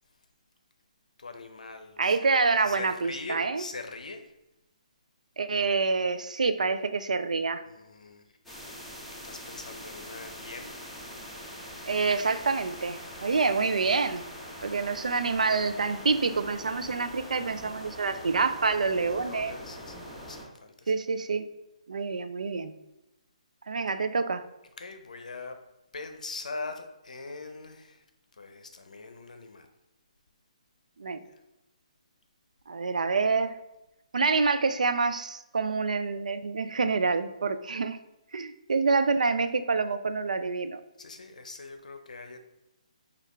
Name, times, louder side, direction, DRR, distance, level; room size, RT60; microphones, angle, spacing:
voice 1, 1.2-2.2 2.6-4.3 7.6-8.4 9.2-10.8 13.1-13.4 17.1-17.5 19.2-20.9 24.8-25.6 25.9-28.0 28.3-29.7 31.2-31.4 41.0-42.4, left 3 dB, 80° left, 6 dB, 0.6 m, -42 dB
voice 2, 2.0-3.6 5.4-7.6 11.9-14.2 14.6-19.5 20.9-21.5 21.9-22.7 23.7-24.4 31.0-31.2 32.7-33.6 34.1-38.0 38.3-40.8, right 4 dB, 85° right, 10 dB, 0.3 m, -27 dB
sound 1, 8.4-20.4, equal, ahead, 0.8 m, -43 dB
4.7 x 2.4 x 3.3 m, 0.93 s
hypercardioid pair, 150°, 4 cm